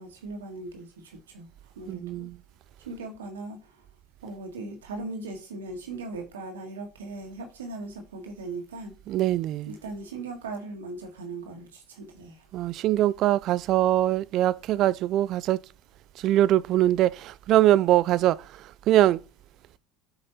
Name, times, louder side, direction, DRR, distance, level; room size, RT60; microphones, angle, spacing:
voice 1, 0.0-1.5 1.8-2.3 2.9-3.6 4.2-8.9 9.7-12.4, right 3 dB, 80° right, 1.8 m, -38 dB
voice 2, 1.9-2.4 9.1-9.8 12.5-15.6 16.2-18.4 18.9-19.2, right 13 dB, 55° right, 0.4 m, -22 dB
8.3 x 5.8 x 4.2 m
hypercardioid pair, 70°, 0 cm